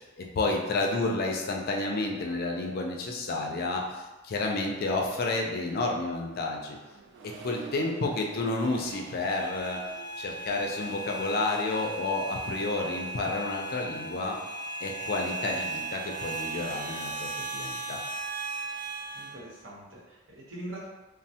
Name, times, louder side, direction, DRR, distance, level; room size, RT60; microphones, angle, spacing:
voice 1, 0.2-6.8 7.2-9.8 10.2-14.4 14.8-18.0, left 2 dB, 50° left, 1 dB, 0.4 m, -30 dB
Accelerating revving vroom, 6.0-12.4, right 5 dB, 60° right, 0.4 m, -49 dB
sound 1, 8.5-19.3, right 2 dB, 25° left, 0.8 m, -37 dB
voice 2, 19.1-20.8, right 1 dB, 80° right, -5 dB, 0.9 m, -42 dB
3.1 x 2.0 x 2.7 m, 1.1 s
head